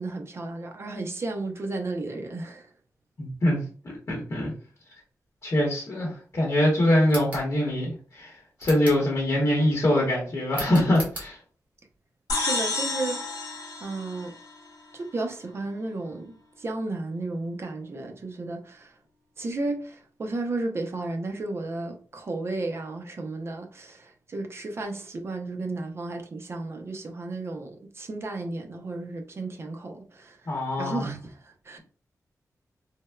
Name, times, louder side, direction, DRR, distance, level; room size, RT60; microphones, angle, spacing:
voice 1, 0.0-2.7 12.3-13.2 13.8-14.3 14.9-18.9 19.4-30.4 30.8-31.8, right 2 dB, 45° right, 0.5 m, -33 dB
voice 2, 3.2-3.6 4.1-4.5 5.4-11.4 30.5-31.1, left 1 dB, 50° left, 0.9 m, -24 dB
sound 1, 7.0-7.5 8.6-9.1 10.5-11.3, equal, 25° right, 1.1 m, -37 dB
sound 2, 12.3-14.9, left 3 dB, 85° left, 0.8 m, -30 dB
3.3 x 2.0 x 2.2 m
wide cardioid pair, 130°, 6 cm